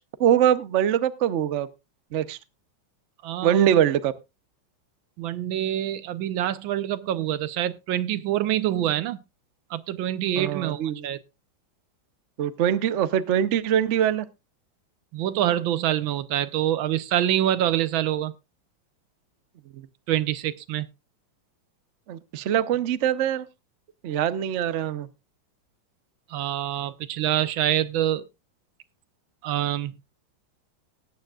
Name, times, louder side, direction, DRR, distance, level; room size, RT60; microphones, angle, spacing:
voice 1, 0.2-1.7 2.1-2.4 3.4-4.1 10.4-11.1 12.4-14.3 19.7-19.8 22.1-23.5 24.0-25.1, right 10 dB, 65° right, 0.7 m, -23 dB
voice 2, 3.2-3.8 5.2-9.2 9.7-11.2 15.1-18.3 20.1-20.9 26.3-28.2 29.4-29.9, right 12 dB, 80° right, 1.5 m, -26 dB
18.5 x 9.1 x 2.3 m
omnidirectional pair, 2.1 m